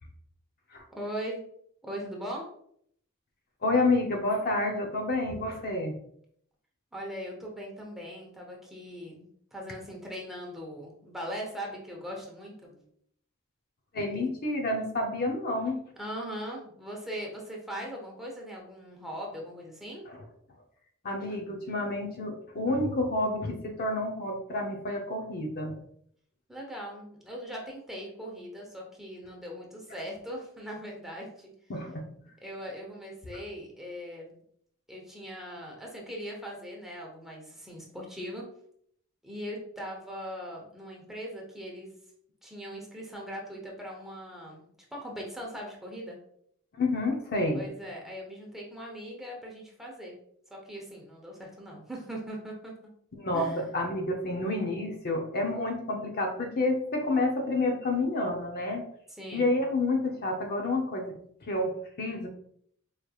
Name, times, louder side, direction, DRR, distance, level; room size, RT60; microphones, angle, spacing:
voice 1, 0.9-1.4 1.8-2.5 6.9-12.8 14.1-14.3 16.0-20.0 26.5-31.5 32.4-34.3 34.9-38.5 39.2-41.9 42.4-44.6 44.9-46.2 47.5-50.1 50.5-52.7 53.3-53.6 59.1-59.5, equal, ahead, -2 dB, 0.8 m, -40 dB
voice 2, 3.6-6.0 13.9-15.8 20.1-20.2 21.0-25.7 31.7-32.1 46.8-47.7 53.2-58.8 59.3-62.3, left 2 dB, 45° left, 2 dB, 0.6 m, -29 dB
4.8 x 3.2 x 2.3 m, 0.67 s
head